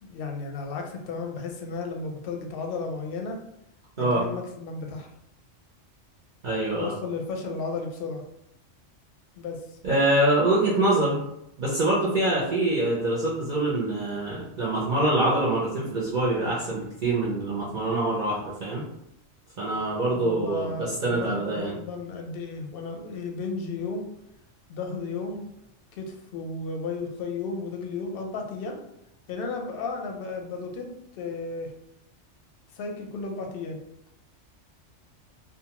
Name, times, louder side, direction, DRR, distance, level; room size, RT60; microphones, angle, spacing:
voice 1, 0.0-3.4 4.0-5.1 6.7-8.2 9.4-9.6 20.1-24.1 24.7-25.5 25.9-28.8 29.3-31.7 32.7-33.8, left 4 dB, 60° left, 2 dB, 0.7 m, -34 dB
voice 2, 6.4-6.9 9.8-11.2 11.6-18.8 19.6-21.7, right 2 dB, 55° right, -6 dB, 0.6 m, -25 dB
2.5 x 2.2 x 2.8 m, 0.81 s
omnidirectional pair, 1.2 m